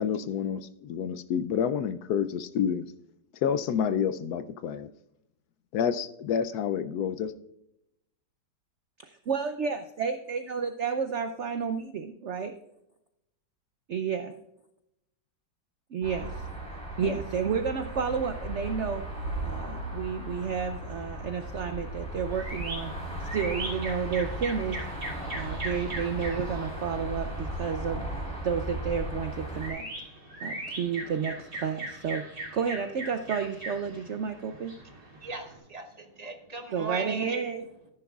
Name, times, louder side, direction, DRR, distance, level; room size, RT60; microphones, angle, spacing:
voice 1, 0.0-2.9 3.4-4.9 5.7-7.3 17.0-17.2, left 8 dB, 70° left, 12 dB, 1.0 m, -29 dB
voice 2, 9.0-12.5 13.9-14.3 15.9-16.4 17.0-19.0 19.4-22.9 23.3-24.8 25.3-28.0 28.4-29.9 30.4-32.2 32.5-34.7 36.7-37.6, right 6 dB, 80° right, 8 dB, 0.6 m, -31 dB
sound 1, 16.0-29.7, right 1 dB, 5° left, 4.2 m, -36 dB
sound 2, 22.3-35.6, right 2 dB, 55° right, 3.4 m, -40 dB
voice 3, 35.2-37.5, right 4 dB, 25° right, 5 dB, 0.9 m, -37 dB
13.5 x 10.0 x 2.4 m, 0.83 s
omnidirectional pair, 2.0 m